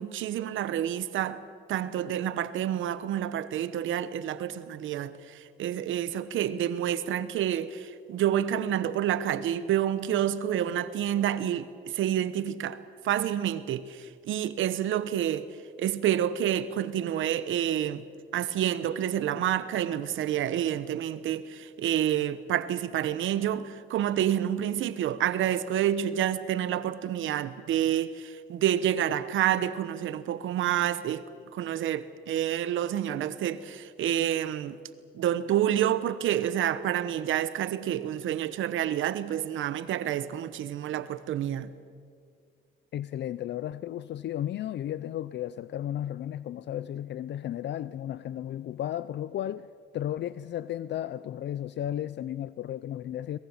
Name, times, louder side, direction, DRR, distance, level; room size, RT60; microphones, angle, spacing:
voice 1, 0.0-1.4 1.7-12.8 13.0-15.5 15.8-18.0 18.3-31.2 31.5-34.8 35.1-41.7, right 11 dB, 80° right, 1.1 m, -28 dB
voice 2, 42.9-53.4, left 11 dB, 65° left, 0.5 m, -34 dB
23.0 x 21.0 x 7.3 m
cardioid pair, 90°, 20 cm